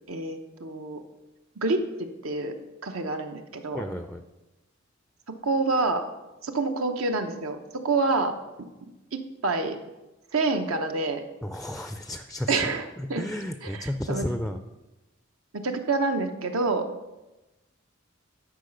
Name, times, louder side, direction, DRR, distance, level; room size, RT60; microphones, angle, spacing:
voice 1, 0.1-1.0 1.6-2.6 2.8-3.9 5.3-6.0 6.4-9.8 10.3-11.2 12.5-13.2 13.6-14.3 15.5-16.9, right 3 dB, 85° right, 6 dB, 1.0 m, -28 dB
voice 2, 3.7-4.2 11.4-12.5 13.0-14.6, left 1 dB, ahead, 8 dB, 0.3 m, -32 dB
10.0 x 4.8 x 6.5 m, 1.1 s
head